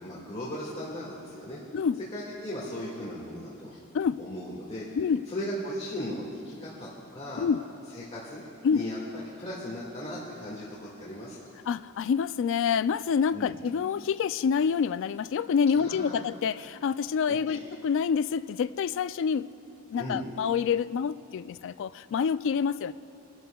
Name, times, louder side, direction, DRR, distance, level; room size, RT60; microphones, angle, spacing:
voice 1, 0.0-1.6 2.1-3.8 4.2-4.9 5.3-7.5 7.9-8.4 8.7-9.0 9.4-11.4 13.3-13.5 15.7-16.2 17.3-17.6 19.9-20.2, equal, 30° left, -7 dB, 1.9 m, -37 dB
voice 2, 11.7-19.5 19.9-22.9, left 6 dB, 60° left, 16 dB, 0.3 m, -27 dB
26.0 x 12.5 x 2.3 m, 2.7 s
head